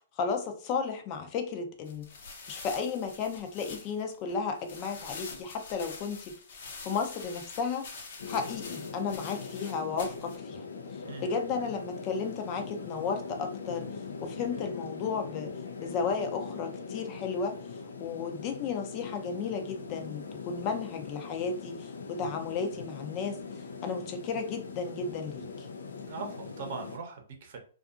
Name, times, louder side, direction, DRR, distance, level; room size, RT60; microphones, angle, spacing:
voice 1, 0.2-2.1 2.5-7.9 8.3-10.7 11.2-13.9 14.2-15.5 15.8-17.6 18.0-23.4 23.8-25.7, left 5 dB, 30° left, 0.5 m, -34 dB
sound 1, 1.9-10.4, left 4 dB, 60° left, 0.8 m, -46 dB
sound 2, 8.2-27.0, left 5 dB, 90° left, 0.5 m, -41 dB
voice 2, 11.0-11.5 26.0-27.6, right 4 dB, 55° right, 0.8 m, -41 dB
2.7 x 2.4 x 2.4 m
hypercardioid pair, 150°, 0 cm